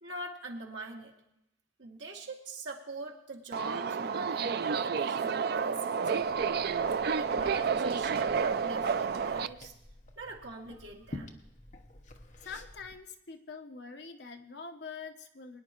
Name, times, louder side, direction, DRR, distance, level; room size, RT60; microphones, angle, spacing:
voice 1, 0.0-1.1 1.8-6.6 7.2-9.7 10.2-11.5, right 2 dB, 75° right, -1 dB, 2.4 m, -44 dB
Subway metro underground, 3.5-9.5, right 6 dB, 55° right, 0.4 m, -30 dB
Liquid, 6.2-12.9, left 1 dB, 40° left, 1.1 m, -49 dB
voice 2, 12.4-15.6, left 5 dB, 60° left, 5 dB, 1.1 m, -44 dB
22.5 x 10.5 x 3.1 m, 0.84 s
head